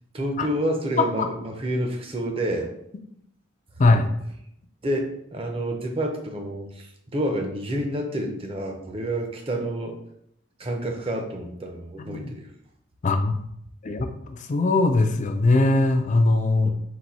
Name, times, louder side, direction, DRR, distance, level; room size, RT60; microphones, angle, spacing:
voice 1, 0.1-2.7 4.8-10.0 10.6-12.5 16.6-16.7, right 1 dB, 25° right, 3 dB, 0.6 m, -29 dB
voice 2, 3.8-4.1 12.0-12.3 13.0-13.4 13.8-16.7, left 2 dB, 35° left, 6 dB, 0.3 m, -21 dB
4.0 x 2.6 x 4.2 m, 0.74 s
head